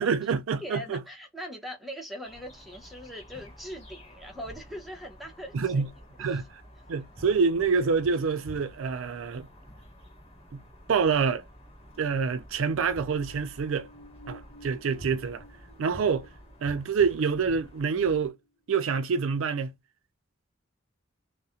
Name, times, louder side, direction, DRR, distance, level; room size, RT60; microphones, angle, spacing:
voice 1, 0.0-1.0 5.5-5.9 6.2-6.6 6.9-9.5 10.5-10.6 10.9-11.5 12.0-13.9 14.3-15.4 15.8-16.3 16.6-18.4 18.7-19.7, right 5 dB, 70° right, 0.4 m, -26 dB
voice 2, 0.6-5.9 6.2-6.4, equal, ahead, 0.5 m, -41 dB
sound 1, 2.2-18.3, equal, 30° left, 1.1 m, -49 dB
sound 2, 12.6-18.9 19.3-19.4, left 1 dB, 50° left, 0.5 m, -55 dB
2.3 x 2.0 x 2.7 m
head